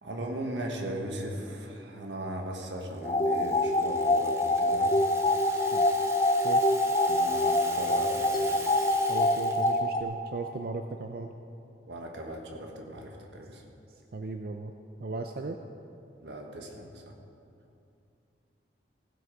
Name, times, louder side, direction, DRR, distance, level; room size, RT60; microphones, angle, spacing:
voice 1, 0.0-4.9 7.1-8.8 11.9-13.6 16.2-17.1, right 1 dB, 75° right, 1 dB, 1.4 m, -38 dB
Rattle (instrument), 2.9-9.8, right 3 dB, 15° right, 0.7 m, -44 dB
sound 1, 3.0-10.0, left 1 dB, 25° left, 0.5 m, -25 dB
voice 2, 9.1-11.3 14.1-14.7 15.0-15.6, right 3 dB, 55° right, 5 dB, 0.5 m, -36 dB
16.0 x 7.9 x 4.9 m, 2.6 s
head